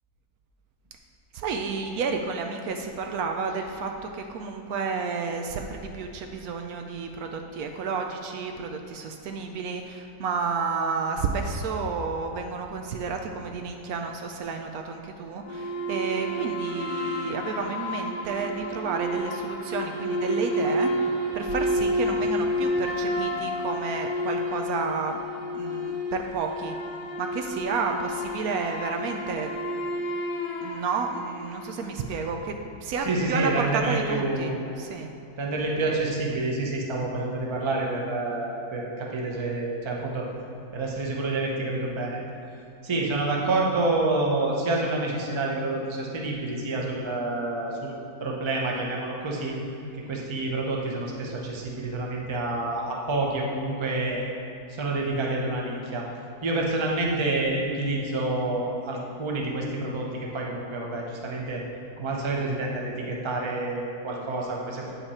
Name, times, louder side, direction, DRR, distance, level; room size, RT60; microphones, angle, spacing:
voice 1, 1.3-20.9 21.3-25.2 25.5-26.7 27.2-29.5 30.6-32.5 32.8-34.5 34.8-35.1, right 4 dB, 75° right, 4 dB, 1.0 m, -31 dB
sound 1, 15.4-32.0, equal, 70° left, 1.5 m, -30 dB
voice 2, 33.0-34.6 35.4-40.3 40.7-42.2 42.8-47.9 48.2-49.6 49.9-54.2 54.7-56.1 56.4-61.6 62.0-64.9, right 2 dB, 25° right, -1 dB, 0.7 m, -28 dB
8.4 x 5.6 x 4.2 m, 2.8 s
omnidirectional pair, 1.7 m